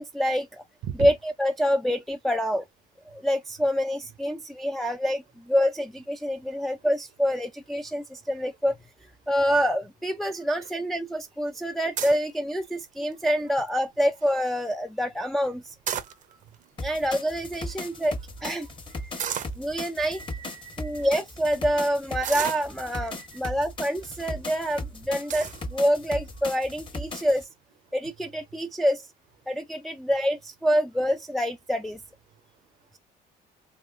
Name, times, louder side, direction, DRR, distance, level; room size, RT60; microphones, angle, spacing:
voice 1, 0.0-0.6 1.0-2.6 3.1-8.8 9.3-15.7 16.8-18.7 19.6-20.2 20.8-27.5 27.9-29.1 29.5-32.0, equal, ahead, 0.4 m, -26 dB
voice 2, 10.4-10.7 16.0-16.4 17.9-18.0 18.4-19.3 20.0-21.1 23.0-23.4 24.6-24.7 25.2-25.3, right 9 dB, 80° right, 0.8 m, -41 dB
sound 1, 12.0-12.3 12.9-13.2 13.7-13.8 14.0-14.3 15.6-16.5 17.3-17.4 17.6-17.7 19.2-19.6 20.3-20.4 21.0-21.1 22.2-23.1 23.9-24.2 24.6-24.7 25.3-25.6, right 9 dB, 50° right, 0.6 m, -33 dB
sound 2, 16.8-27.4, left 2 dB, 30° left, 1.1 m, -37 dB
3.6 x 2.8 x 2.4 m
cardioid pair, 110°, 17 cm